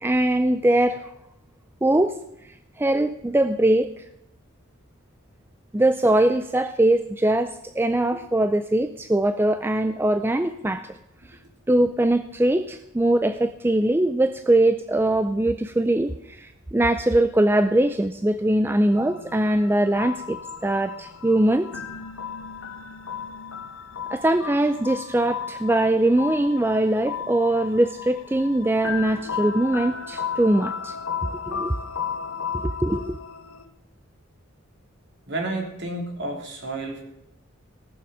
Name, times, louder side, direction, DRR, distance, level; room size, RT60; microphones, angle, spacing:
voice 1, 0.0-1.1 1.8-2.1 2.8-3.9 5.7-10.9 11.7-21.7 24.1-31.0 31.5-31.7 32.5-33.2, right 1 dB, 10° right, 10 dB, 0.4 m, -21 dB
sound 1, 18.9-33.6, left 6 dB, 75° left, 1.0 m, -34 dB
voice 2, 35.3-37.0, right 2 dB, 55° right, 1 dB, 3.1 m, -31 dB
17.5 x 7.1 x 6.3 m, 0.84 s
head